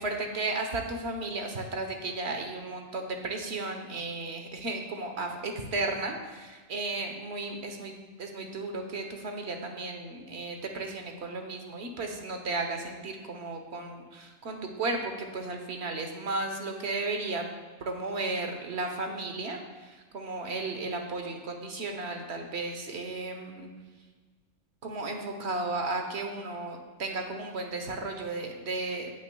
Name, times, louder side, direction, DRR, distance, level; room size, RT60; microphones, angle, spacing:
voice 1, 0.0-17.5 17.8-23.7 24.8-29.1, right 2 dB, 65° right, 4 dB, 1.3 m, -34 dB
18.0 x 6.1 x 2.3 m, 1.4 s
omnidirectional pair, 1.2 m